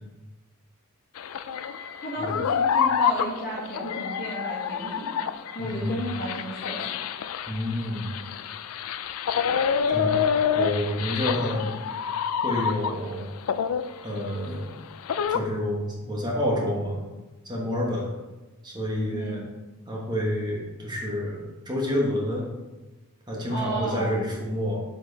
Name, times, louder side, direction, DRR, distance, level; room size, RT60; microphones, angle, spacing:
sound 1, 1.2-13.1 13.5-15.4, left 7 dB, 75° left, 0.4 m, -27 dB
voice 1, 2.0-5.1 5.5-6.9 11.5-11.6 19.1-19.5 23.5-24.2, right 1 dB, 45° left, -5 dB, 1.6 m, -33 dB
voice 2, 5.6-6.1 7.5-8.2 9.5-10.3 10.5-11.8 12.4-13.3 14.0-14.8 15.3-17.0 17.4-18.1 18.6-19.4 19.9-22.5 23.3-24.8, left 1 dB, 20° right, -2 dB, 1.3 m, -29 dB
7.2 x 5.2 x 4.0 m, 1.1 s
head